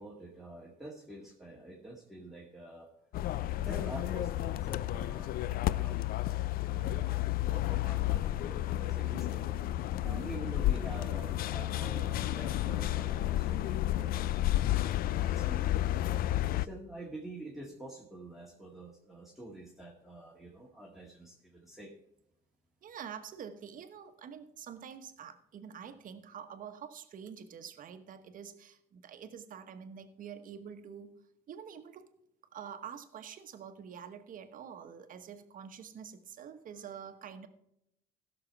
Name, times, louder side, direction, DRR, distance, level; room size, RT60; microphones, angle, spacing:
voice 1, 0.0-2.9 3.6-7.2 7.5-9.5 10.0-21.9, right 1 dB, ahead, -3 dB, 1.9 m, -47 dB
sound 1, 3.1-16.7, left 14 dB, 60° left, 0.4 m, -31 dB
voice 2, 22.8-31.2 31.5-32.1 32.5-37.5, right 7 dB, 55° right, 9 dB, 1.2 m, -46 dB
16.0 x 6.6 x 4.6 m, 0.79 s
cardioid pair, 110°, 17 cm